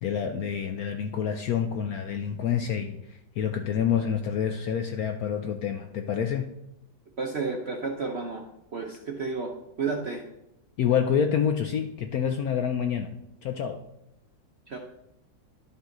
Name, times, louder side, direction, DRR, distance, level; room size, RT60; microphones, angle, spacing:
voice 1, 0.0-6.5 10.8-13.1 13.4-13.8, left 8 dB, 70° left, 6 dB, 0.9 m, -27 dB
voice 2, 7.2-8.4 8.7-10.2 14.7-14.8, right 4 dB, 55° right, 1 dB, 0.7 m, -31 dB
11.5 x 5.5 x 3.8 m, 0.86 s
omnidirectional pair, 2.0 m